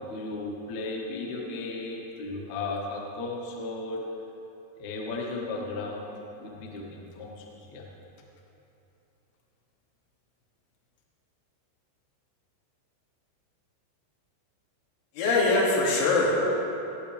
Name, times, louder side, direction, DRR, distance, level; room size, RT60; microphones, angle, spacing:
voice 1, 0.1-4.0 4.8-6.1 6.3-7.8, left 3 dB, 65° left, -2 dB, 2.7 m, -35 dB
voice 2, 15.2-16.4, left 2 dB, 85° left, -5 dB, 5.0 m, -22 dB
23.5 x 9.2 x 3.4 m, 3.0 s
omnidirectional pair, 6.0 m